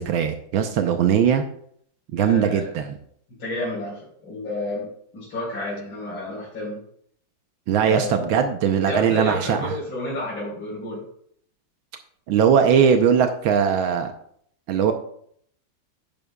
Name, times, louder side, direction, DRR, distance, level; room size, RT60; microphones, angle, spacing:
voice 1, 0.0-1.4 2.1-2.9 7.7-9.7 12.3-14.1 14.7-14.9, right 7 dB, 80° right, 6 dB, 1.6 m, -20 dB
voice 2, 2.2-2.7 3.4-4.9 5.1-6.8 7.8-8.4 8.9-11.0, left 1 dB, 75° left, -9 dB, 5.2 m, -30 dB
11.0 x 10.5 x 2.3 m, 0.65 s
omnidirectional pair, 2.2 m